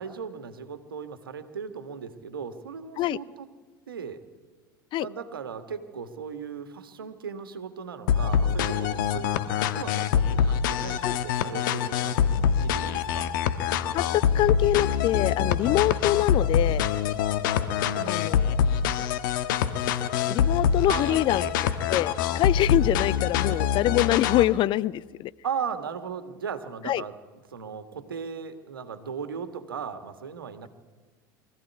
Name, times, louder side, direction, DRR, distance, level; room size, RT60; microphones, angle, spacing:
voice 1, 0.0-3.5 3.9-4.2 5.0-13.3 17.8-18.4 20.9-21.6 25.4-27.2 27.5-30.7, right 6 dB, 80° right, 10 dB, 1.6 m, -37 dB
sound 1, 8.1-24.5, left 8 dB, 65° left, 1.3 m, -25 dB
voice 2, 13.9-16.8 18.1-18.5 20.3-21.4 21.9-25.3 26.9-27.0, left 14 dB, 45° left, 20 dB, 0.6 m, -25 dB
23.5 x 14.5 x 9.5 m, 1.3 s
hypercardioid pair, 75°, 12 cm